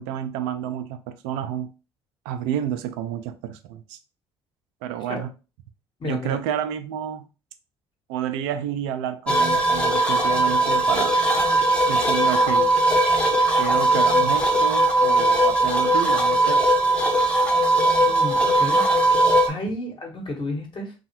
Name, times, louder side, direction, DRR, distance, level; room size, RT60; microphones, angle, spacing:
voice 1, 0.0-1.7 2.3-4.0 4.8-5.3 6.0-7.3 8.1-11.2 11.9-12.7 13.6-16.7, right 9 dB, 70° right, 0.4 m, -30 dB
voice 2, 6.0-6.4 18.0-18.8 19.5-20.9, left 1 dB, 40° left, 1.1 m, -31 dB
sound 1, 9.3-19.5, right 1 dB, 5° left, 0.7 m, -19 dB
2.7 x 2.3 x 2.9 m
hypercardioid pair, 55°, 13 cm